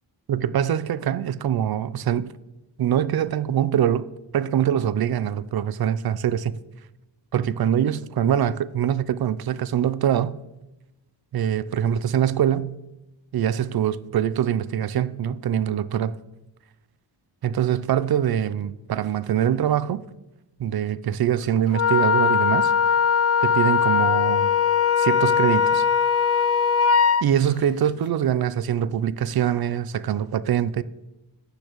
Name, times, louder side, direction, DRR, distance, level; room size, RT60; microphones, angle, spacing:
voice 1, 0.3-2.3 2.8-6.6 7.3-10.4 11.3-12.8 13.3-16.1 17.4-20.0 20.6-22.7 23.4-24.5 25.0-25.8 27.2-30.8, right 10 dB, 50° right, 0.6 m, -23 dB
Wind instrument woodwind instrument, 21.7-27.2, left 6 dB, 35° left, 0.4 m, -20 dB
15.0 x 10.0 x 3.1 m
cardioid pair, 80°, 47 cm